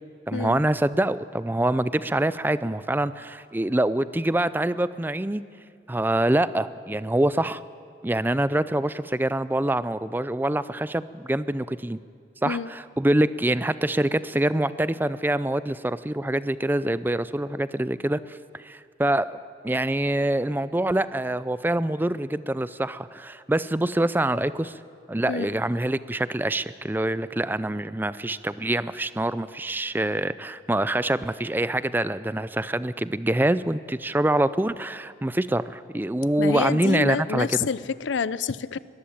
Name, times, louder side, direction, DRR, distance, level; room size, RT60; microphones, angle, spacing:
voice 1, 0.3-5.4 5.9-7.6 8.0-12.0 12.4-18.4 18.6-19.4 19.6-24.7 25.1-37.7, right 1 dB, 10° right, 15 dB, 0.4 m, -25 dB
voice 2, 36.4-38.8, left 5 dB, 85° left, 18 dB, 0.6 m, -28 dB
22.0 x 14.5 x 8.6 m, 2.3 s
head